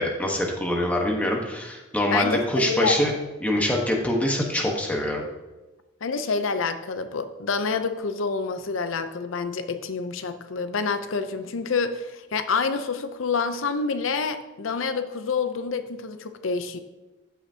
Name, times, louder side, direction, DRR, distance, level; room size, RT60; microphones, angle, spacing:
voice 1, 0.0-3.1 3.4-5.3, left 1 dB, 5° left, 0 dB, 1.2 m, -24 dB
voice 2, 2.1-3.0 6.0-16.8, left 4 dB, 90° left, 9 dB, 0.6 m, -27 dB
14.5 x 5.8 x 2.8 m, 1.1 s
head